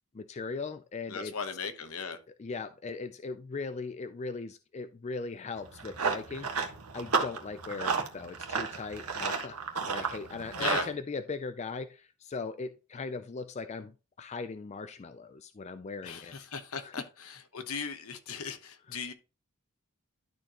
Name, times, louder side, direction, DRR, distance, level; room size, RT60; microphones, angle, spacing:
voice 1, 0.1-1.3 2.4-6.5 6.9-16.3 16.8-17.1 18.9-19.0, left 4 dB, 30° left, 0.4 m, -39 dB
voice 2, 1.1-2.2 10.6-10.9 16.0-19.1, left 5 dB, 70° left, 1.0 m, -38 dB
Run, 5.6-10.9, right 5 dB, 80° right, 1.3 m, -32 dB
12.0 x 4.4 x 2.9 m
head